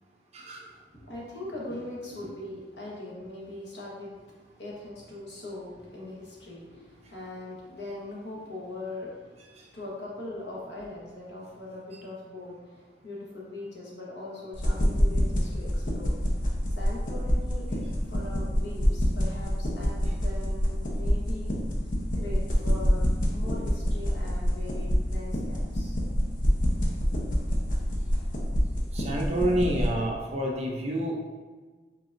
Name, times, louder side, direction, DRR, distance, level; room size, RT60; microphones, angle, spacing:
voice 1, 0.9-4.1 4.6-9.2 9.5-16.1 16.7-17.6 18.1-21.5 22.1-26.0 28.1-28.2 28.9-29.0, left 2 dB, 75° left, -5 dB, 1.3 m, -40 dB
sound 1, 14.5-29.9, equal, 50° left, 0.8 m, -27 dB
voice 2, 28.9-31.1, right 1 dB, 40° right, -1 dB, 0.6 m, -28 dB
4.6 x 4.0 x 2.6 m, 1.4 s
head